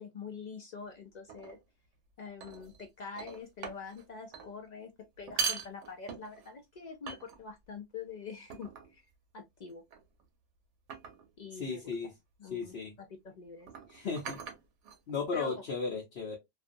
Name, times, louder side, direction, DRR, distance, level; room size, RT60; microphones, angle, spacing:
voice 1, 0.0-1.6 2.2-4.9 5.2-9.0 9.3-9.8 11.4-11.9 12.4-13.7 15.3-15.6, left 5 dB, 75° left, 0.4 m, -45 dB
sound 1, 1.3-1.6 2.4-2.9 3.2-4.0 4.3-4.5 5.2-6.5 7.1-7.7 8.5-9.0 9.9-10.2 10.9-11.3 12.5-12.7 13.6-15.3, right 6 dB, 75° right, 1.0 m, -40 dB
voice 2, 11.5-12.1 12.5-12.9 13.9-14.4 15.1-16.4, left 4 dB, 60° left, 0.9 m, -35 dB
2.5 x 2.3 x 2.5 m
omnidirectional pair, 1.3 m